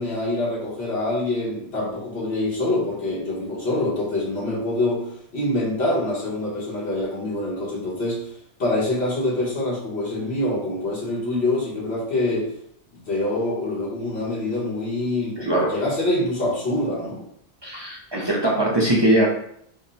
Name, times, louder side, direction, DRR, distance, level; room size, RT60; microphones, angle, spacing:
voice 1, 0.0-5.1 5.3-8.3 8.6-12.5 12.9-17.2, left 1 dB, 80° left, -6 dB, 1.5 m, -25 dB
voice 2, 15.4-15.7 17.6-19.3, right 1 dB, 30° right, -4 dB, 0.6 m, -21 dB
3.5 x 2.2 x 3.9 m, 0.69 s
omnidirectional pair, 1.1 m